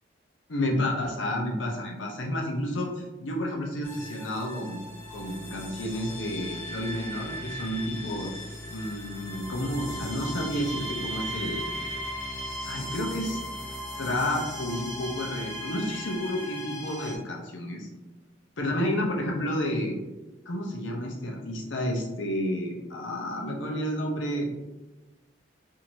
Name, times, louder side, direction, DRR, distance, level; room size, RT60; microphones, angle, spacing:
voice 1, 0.5-4.8 5.1-8.3 8.7-11.7 12.6-13.4 14.0-17.9 18.6-20.0 20.5-24.5, left 1 dB, 85° left, 0 dB, 0.8 m, -30 dB
sound 1, 3.8-17.2, equal, 15° left, 0.7 m, -37 dB
4.5 x 2.7 x 2.7 m, 1.1 s
head